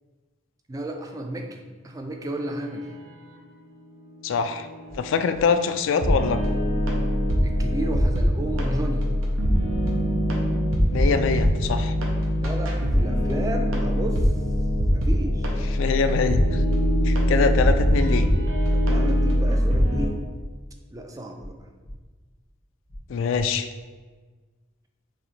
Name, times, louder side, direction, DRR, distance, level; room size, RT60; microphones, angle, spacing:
voice 1, 0.7-2.9 7.4-9.0 12.4-14.3 14.9-15.6 18.7-20.2 20.9-21.6, right 1 dB, 15° right, 4 dB, 0.3 m, -33 dB
voice 2, 4.2-4.7 5.0-6.4 10.9-11.9 15.7-16.6 17.0-18.3 23.1-23.7, left 5 dB, 65° left, 9 dB, 0.3 m, -24 dB
sound 1, 4.5-5.1 6.0-20.1, equal, 85° right, 0.8 m, -22 dB
sound 2, 4.9-5.0 5.3-5.4 6.4-6.5 6.8-6.9 7.9-8.0 8.3-8.4 9.4-9.5 9.8-9.9 10.9-11.0 11.3-11.5 12.4-12.5 12.8-13.0 13.9-14.0 14.3-14.4 15.4-15.5 15.8-16.0 16.9-17.0 17.3-17.4 18.4-18.5 18.8-18.9 19.9-20.0 20.3-20.4 21.4-21.5 21.8-21.9 22.9-23.0 23.3-23.4, equal, 50° right, 1.3 m, -41 dB
4.8 x 3.1 x 3.2 m, 1.4 s
head